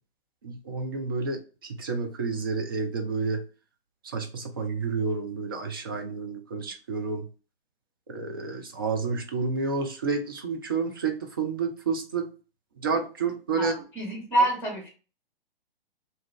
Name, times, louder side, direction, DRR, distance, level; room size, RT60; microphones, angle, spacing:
voice 1, 0.4-3.4 4.0-7.3 8.1-12.3 12.8-13.8, right 4 dB, 25° right, 4 dB, 0.3 m, -30 dB
voice 2, 13.6-14.9, right 1 dB, 5° left, 1 dB, 1.0 m, -26 dB
2.6 x 2.3 x 3.6 m, 0.35 s
figure-of-eight pair, 120°, 30 cm